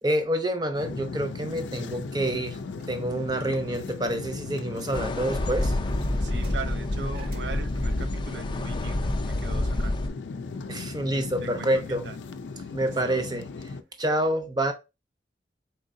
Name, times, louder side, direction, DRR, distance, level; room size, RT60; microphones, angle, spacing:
voice 1, 0.0-2.6 2.9-5.8 10.7-12.0 12.7-13.7 14.0-14.7, right 1 dB, 25° right, 0.7 m, -27 dB
sound 1, 0.7-13.8, left 4 dB, 90° left, 0.4 m, -37 dB
sound 2, 2.8-7.7, right 3 dB, 55° right, 1.1 m, -51 dB
sound 3, 4.9-10.1, left 1 dB, 25° left, 0.5 m, -28 dB
voice 2, 6.2-10.1 11.4-12.2 13.0-13.3, right 4 dB, 75° right, 0.6 m, -40 dB
4.4 x 3.9 x 2.6 m
head